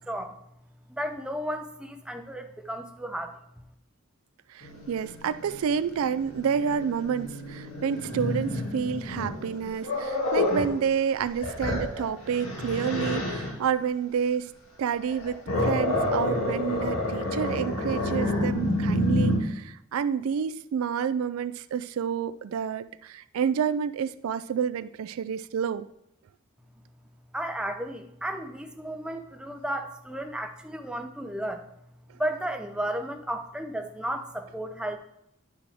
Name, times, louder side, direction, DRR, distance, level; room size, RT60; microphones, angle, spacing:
voice 1, 0.1-0.4 0.9-3.4 27.3-31.7 32.2-35.0, right 1 dB, 5° right, 5 dB, 0.5 m, -33 dB
voice 2, 4.5-14.5 14.8-25.9, right 7 dB, 75° right, 14 dB, 0.3 m, -29 dB
Growling, 4.6-10.7 11.2-13.5 15.0-19.4, left 1 dB, 75° left, 2.2 m, -29 dB
9.8 x 6.1 x 3.4 m, 0.78 s
head